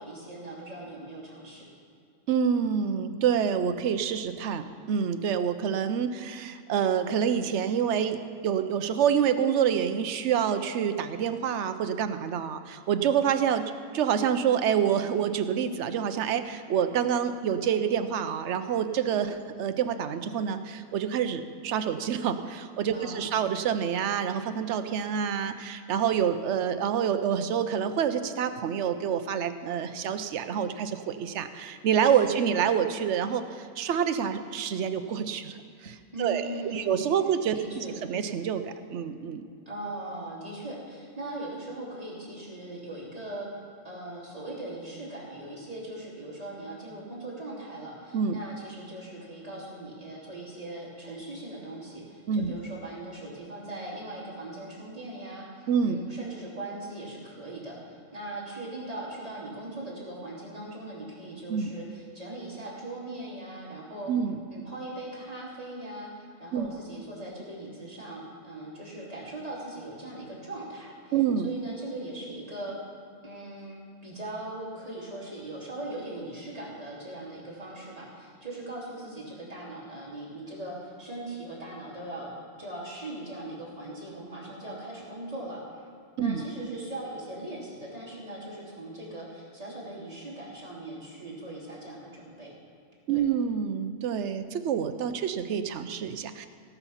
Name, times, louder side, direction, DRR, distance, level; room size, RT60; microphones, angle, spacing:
voice 1, 0.0-1.6 22.9-23.3 32.1-32.3 36.1-36.9 37.5-38.0 39.7-43.5 43.8-64.1 64.5-71.1 71.4-72.7 73.2-85.6 86.2-92.5 93.1-93.2, right 1 dB, 30° right, -6 dB, 3.1 m, -40 dB
voice 2, 2.3-13.6 13.9-39.4 48.1-48.4 52.3-52.5 55.7-56.0 61.5-61.7 64.1-64.4 66.5-66.7 71.1-71.5 86.2-86.4 93.1-96.5, right 8 dB, 70° right, 9 dB, 1.0 m, -27 dB
17.5 x 6.9 x 5.6 m, 2.3 s
omnidirectional pair, 1.2 m